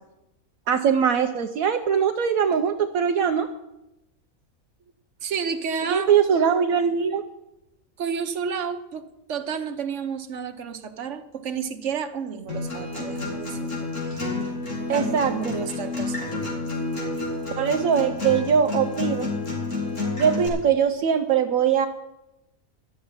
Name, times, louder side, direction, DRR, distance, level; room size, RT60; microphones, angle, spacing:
voice 1, 0.7-3.5 5.9-7.2 14.9-15.5 17.6-19.3 20.2-21.9, right 7 dB, 75° right, 5 dB, 1.2 m, -21 dB
voice 2, 5.2-6.2 8.0-13.7 14.1-14.2 14.9-16.5, right 6 dB, 55° right, 7 dB, 1.3 m, -31 dB
Acoustic guitar, 12.5-20.5, left 3 dB, 60° left, 3.8 m, -29 dB
12.5 x 7.4 x 9.6 m, 0.93 s
omnidirectional pair, 1.5 m